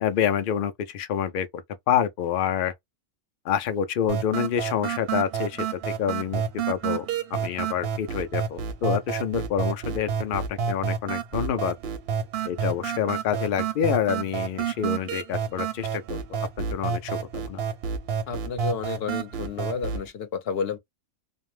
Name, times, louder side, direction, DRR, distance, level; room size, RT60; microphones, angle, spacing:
voice 1, 0.0-2.7 3.4-11.8 12.5-16.2 16.6-17.6, left 8 dB, 85° left, 0.4 m, -27 dB
sound 1, 4.1-20.1, right 7 dB, 60° right, 0.7 m, -30 dB
voice 2, 18.3-20.8, left 6 dB, 55° left, 0.8 m, -31 dB
2.5 x 2.0 x 3.1 m
omnidirectional pair, 1.4 m